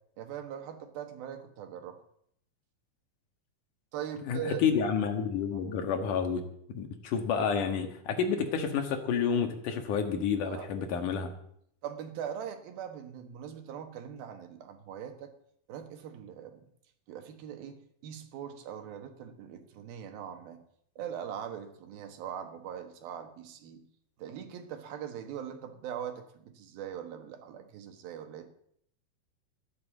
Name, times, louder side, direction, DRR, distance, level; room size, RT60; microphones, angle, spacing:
voice 1, 0.2-2.0 3.9-4.6 5.5-5.6 10.4-10.7 11.8-15.3 15.7-16.7 17.1-20.6 21.0-23.8 24.2-28.5, right 9 dB, 90° right, 7 dB, 3.3 m, -41 dB
voice 2, 4.2-6.4 6.7-11.3, left 6 dB, 65° left, 6 dB, 3.0 m, -29 dB
13.0 x 10.5 x 7.4 m, 0.68 s
omnidirectional pair, 4.1 m